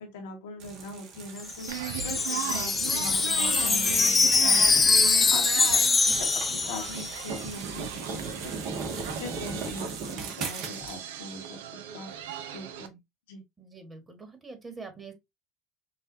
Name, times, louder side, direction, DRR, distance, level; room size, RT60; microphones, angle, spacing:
voice 1, 0.0-5.0 5.3-8.5 8.8-12.1 12.5-13.0 13.3-13.4, left 2 dB, 80° left, 1.4 m, -42 dB
sound 1, 0.6-11.0, right 4 dB, 60° right, 1.4 m, -39 dB
Wind chime, 1.4-7.4, left 4 dB, 25° left, 0.6 m, -23 dB
sound 2, 1.7-12.9, right 9 dB, 85° right, 0.6 m, -37 dB
voice 2, 13.6-15.1, right 4 dB, 25° right, 1.7 m, -44 dB
5.5 x 2.5 x 2.7 m
hypercardioid pair, 85°, 0 cm